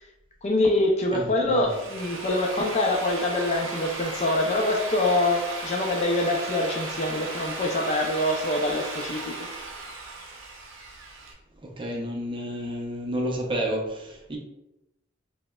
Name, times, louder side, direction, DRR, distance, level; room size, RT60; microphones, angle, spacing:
voice 1, 0.4-9.5, left 2 dB, 35° left, 0.4 m, -25 dB
voice 2, 1.1-1.7 11.6-14.4, equal, 25° right, 0.5 m, -30 dB
Drill, 1.5-11.3, right 3 dB, 70° right, 0.6 m, -36 dB
4.9 x 2.1 x 2.2 m
head